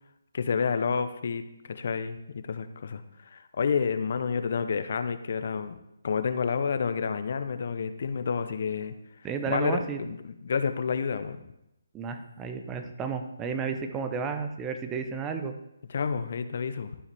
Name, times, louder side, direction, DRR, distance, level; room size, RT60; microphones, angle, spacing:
voice 1, 0.3-1.4 1.7-8.9 9.5-11.4 15.9-16.9, left 6 dB, 55° left, 10 dB, 0.7 m, -29 dB
voice 2, 9.2-10.0 11.9-15.5, right 5 dB, 15° right, 6 dB, 0.7 m, -32 dB
12.5 x 4.8 x 3.4 m, 0.85 s
hypercardioid pair, 150°, 0 cm